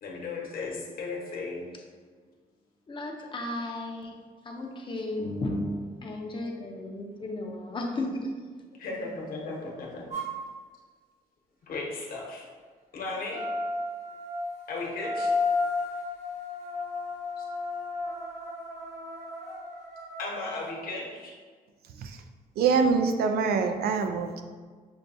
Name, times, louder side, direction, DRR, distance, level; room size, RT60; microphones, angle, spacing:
voice 1, 0.0-1.7 8.8-10.1 11.7-12.4 12.9-13.5 14.7-15.3 17.4-17.5 20.2-21.3, left 3 dB, 65° left, -2 dB, 1.0 m, -36 dB
voice 2, 2.9-4.1 4.4-8.3, left 1 dB, 30° left, 1 dB, 0.6 m, -34 dB
sound 1, 10.1-10.4 13.3-20.7, left 3 dB, 50° right, 1.1 m, -33 dB
voice 3, 22.6-24.4, right 5 dB, 90° right, 7 dB, 0.4 m, -25 dB
6.6 x 2.3 x 2.6 m, 1.5 s
cardioid pair, 125°, 16 cm